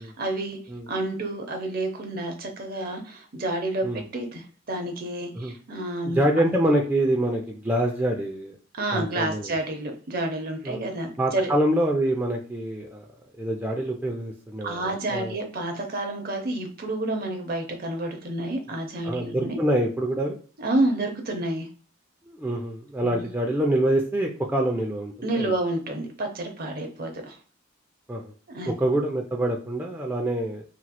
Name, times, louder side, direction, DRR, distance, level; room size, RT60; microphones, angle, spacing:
voice 1, 0.0-0.6 0.9-6.2 8.8-11.5 14.6-19.6 20.6-21.7 23.0-23.2 25.2-27.4 28.5-28.8, right 2 dB, 50° right, 4 dB, 0.7 m, -29 dB
voice 2, 6.0-8.6 8.9-9.6 10.6-10.8 11.2-13.0 13.4-15.4 19.0-20.4 22.3-25.5 28.1-28.3 28.7-30.6, right 1 dB, 10° right, 0 dB, 0.3 m, -26 dB
3.0 x 2.9 x 2.2 m, 0.41 s
head